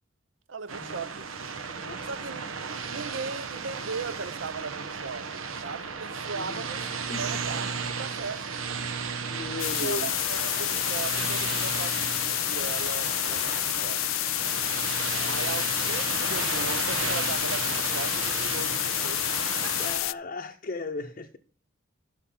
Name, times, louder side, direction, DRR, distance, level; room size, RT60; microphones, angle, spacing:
voice 1, 0.5-1.3 2.0-2.5 2.9-6.9 7.2-8.6 9.7-14.3 15.3-19.2 19.6-19.9, right 4 dB, 70° right, 0.7 m, -38 dB
sound 1, 0.7-20.0, right 5 dB, 90° right, 1.1 m, -34 dB
voice 2, 6.3-6.6 7.1-7.2 9.3-10.1 15.1-15.6 18.6-18.8 19.8-21.4, left 2 dB, 40° left, 0.7 m, -37 dB
sound 2, 9.6-20.1, left 18 dB, 75° left, 0.3 m, -29 dB
12.5 x 6.6 x 3.8 m
head